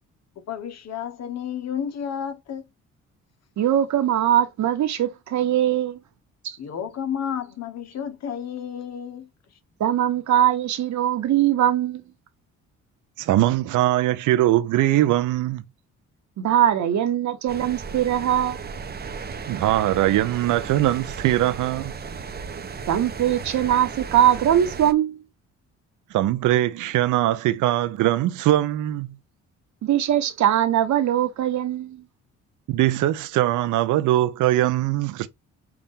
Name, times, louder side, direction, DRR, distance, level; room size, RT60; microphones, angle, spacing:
voice 1, 0.4-2.7 6.6-9.3, left 8 dB, 60° left, 1.0 m, -31 dB
voice 2, 3.6-6.0 6.4-6.6 9.8-12.0 16.4-18.6 22.9-25.2 29.8-32.0, right 11 dB, 70° right, 1.2 m, -21 dB
voice 3, 13.2-15.6 19.5-21.9 26.1-29.1 32.7-35.3, right 14 dB, 85° right, 0.6 m, -21 dB
sound 1, 17.5-24.9, right 5 dB, 30° right, 0.8 m, -35 dB
5.8 x 2.5 x 3.5 m
cardioid pair, 90°, 30 cm